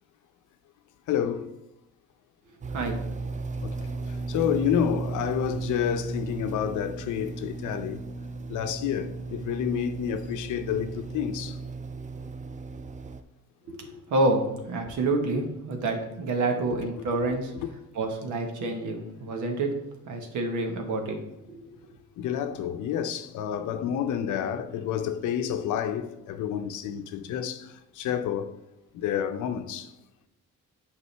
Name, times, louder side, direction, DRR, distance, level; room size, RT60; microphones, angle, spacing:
voice 1, 1.1-1.4 3.6-3.7 4.3-8.0 8.5-11.5 22.2-27.7 28.0-28.5 28.9-29.9, left 9 dB, 80° left, 0.7 m, -29 dB
sound 1, 2.6-13.2, right 3 dB, 25° right, 0.5 m, -35 dB
voice 2, 13.6-17.5 17.9-19.7 20.0-21.2 21.5-21.7, right 2 dB, 75° right, 1.3 m, -28 dB
8.3 x 5.0 x 3.3 m
cardioid pair, 90°, 30 cm